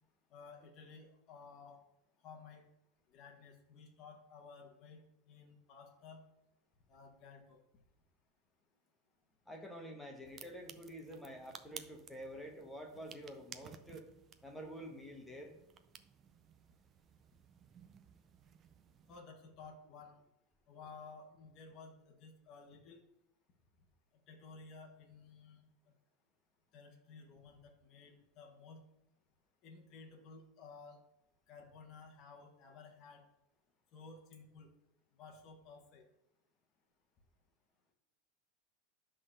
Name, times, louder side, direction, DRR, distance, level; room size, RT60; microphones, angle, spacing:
voice 1, 0.3-1.8 2.2-2.6 3.1-6.2 6.9-7.6 19.1-20.2 20.7-23.0 24.3-25.7 26.7-28.8 29.6-31.0 31.5-33.2 33.9-34.7 35.2-36.0, left 4 dB, 30° left, 1 dB, 1.3 m, -55 dB
voice 2, 9.5-14.1 14.4-15.6, equal, 5° left, 1 dB, 1.1 m, -48 dB
sound 1, 10.2-19.2, right 8 dB, 20° right, 0.4 m, -57 dB
10.5 x 3.8 x 6.5 m, 0.84 s
supercardioid pair, 175°, 0 cm